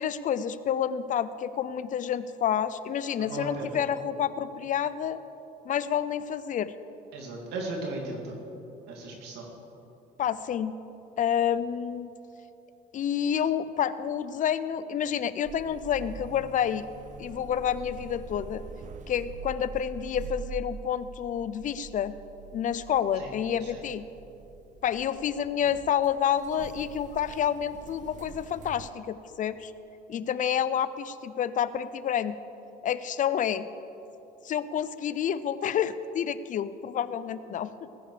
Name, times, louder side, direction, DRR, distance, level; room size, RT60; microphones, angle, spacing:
voice 1, 0.0-5.2 5.6-6.7 10.2-10.7 11.2-12.1 12.9-16.9 17.2-18.6 19.1-22.1 22.5-24.0 24.8-29.7 30.1-32.3 32.8-33.7 34.4-37.9, left 9 dB, 50° left, 15 dB, 0.6 m, -29 dB
voice 2, 3.2-3.8 7.1-8.4 8.9-9.5 23.1-23.3 23.6-23.8, right 2 dB, 85° right, 0 dB, 2.9 m, -36 dB
sound 1, 15.4-28.9, right 6 dB, 45° right, 0.7 m, -44 dB
19.0 x 9.9 x 5.0 m, 2.9 s
cardioid pair, 110°, 17 cm